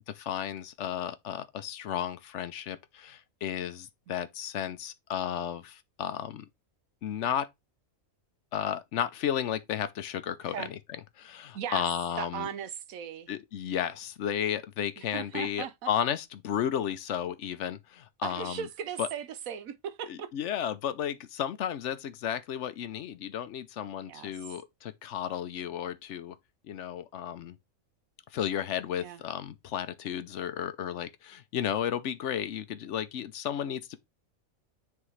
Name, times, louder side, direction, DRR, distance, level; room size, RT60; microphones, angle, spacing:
voice 1, 0.1-6.5 7.0-7.5 8.5-10.8 11.2-12.5 13.3-18.7 19.0-19.1 20.1-26.4 26.6-27.6 28.3-34.0, left 9 dB, 65° left, 0.9 m, -33 dB
voice 2, 12.2-13.3 15.0-15.9 18.2-20.3 24.1-24.3 29.0-29.2, right 8 dB, 75° right, 1.1 m, -37 dB
9.4 x 3.6 x 3.2 m
omnidirectional pair, 1.5 m